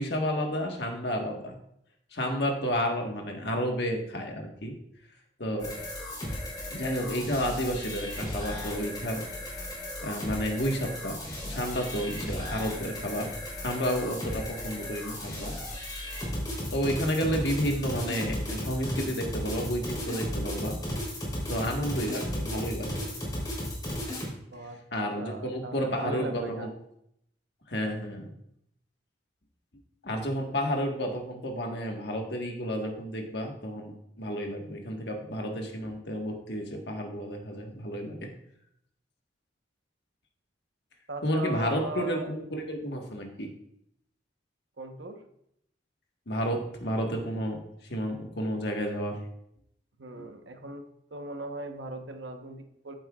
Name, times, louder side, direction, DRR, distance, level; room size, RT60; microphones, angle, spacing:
voice 1, 0.0-1.6 2.1-4.7 5.4-5.7 6.7-9.3 10.0-11.2 11.4-13.3 13.6-15.5 16.7-20.8 21.5-23.1 24.9-26.7 27.7-28.3 30.0-38.3 41.2-43.5 46.3-47.6 47.9-49.2 50.2-50.3, equal, 65° left, 1 dB, 1.5 m, -31 dB
sound 1, 5.6-24.3, left 1 dB, 20° left, 3.5 m, -35 dB
voice 2, 25.2-26.7 41.1-42.3 44.8-45.2 50.0-50.8 51.1-52.9, right 2 dB, 85° right, 5 dB, 1.1 m, -38 dB
14.0 x 7.7 x 2.4 m, 0.74 s
head